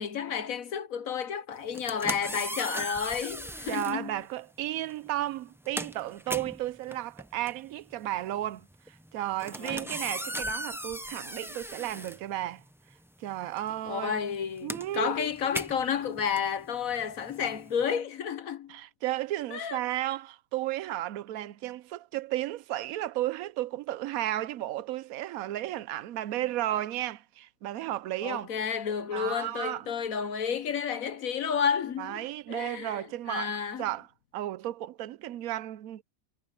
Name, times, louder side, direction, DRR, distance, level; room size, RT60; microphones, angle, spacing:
voice 1, 0.0-4.2 9.6-9.9 13.9-18.8 19.5-19.8 28.2-33.8, left 7 dB, 75° left, 1.4 m, -31 dB
sound 1, 1.6-4.0 4.9-5.1 5.4-12.9 13.2-17.8, equal, 5° right, 0.5 m, -38 dB
voice 2, 3.7-12.6 13.2-14.2 14.6-15.3 18.7-28.5 29.1-29.9 32.0-34.1 34.3-36.0, right 14 dB, 80° right, 1.0 m, -34 dB
omnidirectional pair, 1.5 m